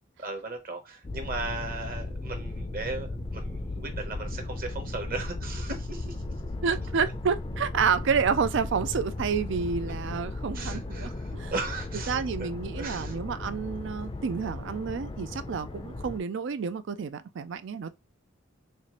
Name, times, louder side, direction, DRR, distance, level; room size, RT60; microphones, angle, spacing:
voice 1, 0.2-6.2 10.5-12.5 12.8-13.2, right 3 dB, 45° right, 1.0 m, -37 dB
sound 1, 1.0-16.2, left 2 dB, 25° left, 0.5 m, -36 dB
voice 2, 6.6-11.5 12.1-18.0, right 6 dB, 60° right, 0.4 m, -29 dB
4.4 x 2.5 x 3.0 m
head